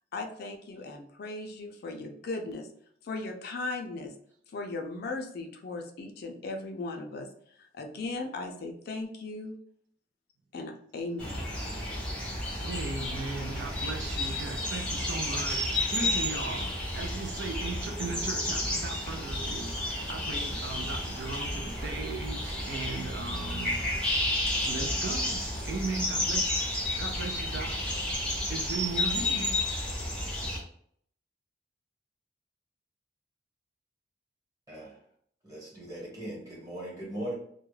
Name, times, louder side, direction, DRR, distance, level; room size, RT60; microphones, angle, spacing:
voice 1, 0.1-2.7 3.0-4.1 4.5-9.6 10.5-11.5, left 2 dB, 55° left, 4 dB, 0.4 m, -37 dB
sound 1, 11.2-30.6, left 1 dB, 5° left, 0.6 m, -31 dB
voice 2, 12.6-23.9 24.7-27.8 28.5-29.6, right 4 dB, 65° right, 4 dB, 0.4 m, -37 dB
voice 3, 35.4-37.3, right 1 dB, 20° right, -5 dB, 1.1 m, -39 dB
2.3 x 2.1 x 3.1 m, 0.64 s
head